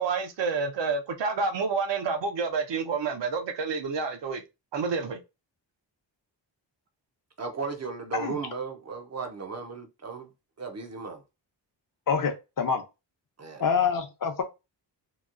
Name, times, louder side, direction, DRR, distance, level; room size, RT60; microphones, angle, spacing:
voice 1, 0.0-4.4 4.7-5.2, right 4 dB, 75° right, 0.7 m, -29 dB
voice 2, 7.4-10.3 10.6-11.2 13.4-13.6, right 4 dB, 35° right, 0.5 m, -35 dB
voice 3, 12.1-12.8 13.6-14.4, left 6 dB, 45° left, 0.7 m, -26 dB
2.9 x 2.7 x 2.5 m
wide cardioid pair, 140°, 44 cm